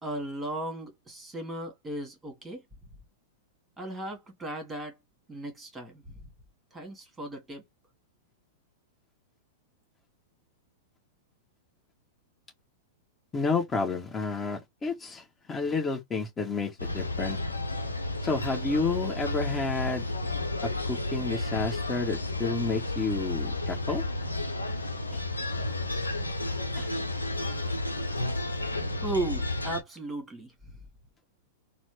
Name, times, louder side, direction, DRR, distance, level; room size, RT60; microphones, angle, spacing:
voice 1, 0.0-2.6 3.8-5.0 5.3-6.3 6.7-7.7 29.0-30.5, right 2 dB, 10° right, 1.7 m, -36 dB
voice 2, 13.3-17.4 18.2-20.1 20.6-24.0 25.1-25.2 26.7-26.9, left 4 dB, 20° left, 1.7 m, -30 dB
sound 1, 16.8-29.8, left 2 dB, 85° left, 0.8 m, -32 dB
4.0 x 2.1 x 3.4 m
figure-of-eight pair, 100°, 0 cm